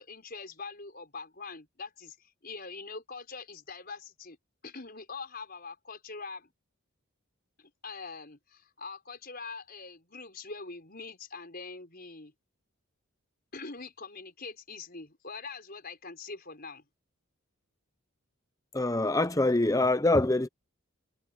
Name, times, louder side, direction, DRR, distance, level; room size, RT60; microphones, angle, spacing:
voice 1, 0.0-4.4 4.6-6.5 7.6-12.3 13.5-16.8, left 4 dB, 40° left, 5.7 m, -43 dB
voice 2, 18.7-20.5, left 2 dB, 15° left, 0.8 m, -24 dB
head